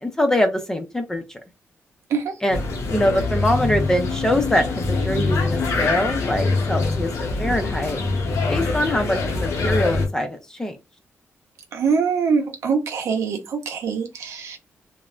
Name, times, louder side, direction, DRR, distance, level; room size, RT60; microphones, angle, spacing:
voice 1, 0.0-1.4 2.4-2.6 2.9-8.0 8.5-10.8, left 1 dB, 10° left, 0.5 m, -23 dB
sound 1, 2.5-10.1, left 3 dB, 80° left, 0.7 m, -24 dB
voice 2, 11.7-14.6, right 5 dB, 80° right, 0.7 m, -23 dB
3.1 x 2.1 x 2.4 m
wide cardioid pair, 145°, 5 cm